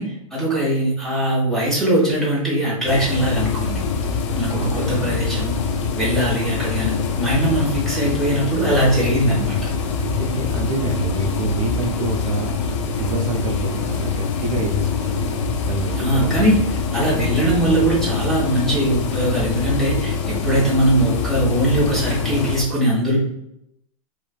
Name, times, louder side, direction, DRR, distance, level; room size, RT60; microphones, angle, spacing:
voice 1, 0.0-3.8 4.4-5.5 5.9-9.6 16.0-23.2, right 1 dB, ahead, -7 dB, 1.2 m, -21 dB
sound 1, 2.9-22.6, left 5 dB, 55° left, 0.5 m, -24 dB
voice 2, 4.6-5.1 10.0-16.5 20.4-20.6, right 2 dB, 70° right, 3 dB, 0.5 m, -27 dB
3.1 x 2.5 x 2.4 m, 0.79 s
hypercardioid pair, 130°, 19 cm